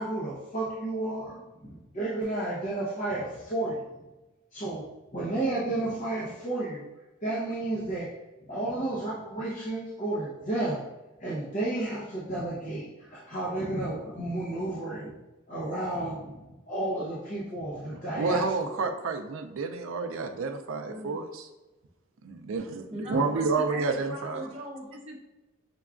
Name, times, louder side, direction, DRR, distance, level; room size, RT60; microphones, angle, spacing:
voice 1, 0.0-4.0 4.5-4.9 5.1-6.9 7.2-8.1 8.4-10.9 11.2-15.2 15.5-16.3 16.7-18.7 23.1-23.3, right 2 dB, 35° left, -8 dB, 0.7 m, -32 dB
voice 2, 18.2-21.5 22.2-24.5, right 4 dB, 75° right, 7 dB, 0.4 m, -30 dB
voice 3, 20.9-21.2 22.9-25.2, equal, 30° right, -3 dB, 0.8 m, -39 dB
5.9 x 2.3 x 2.4 m, 1.1 s
head